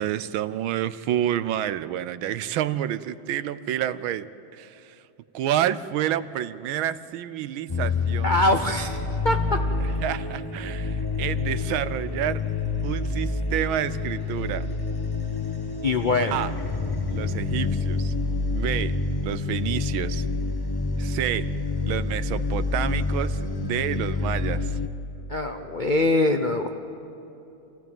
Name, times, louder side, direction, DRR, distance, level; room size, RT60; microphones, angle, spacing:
voice 1, 0.0-5.0 5.3-8.3 10.0-12.4 12.8-14.7 16.3-16.5 17.1-18.1 18.5-20.2 21.0-21.5 21.8-24.8, right 11 dB, 85° right, 14 dB, 1.5 m, -29 dB
sound 1, 7.7-24.9, left 3 dB, 20° left, 0.6 m, -28 dB
voice 2, 8.2-9.0 9.2-9.6 15.8-16.4 25.3-26.7, left 2 dB, 70° left, 5 dB, 0.4 m, -23 dB
27.0 x 16.5 x 8.9 m, 3.0 s
omnidirectional pair, 2.2 m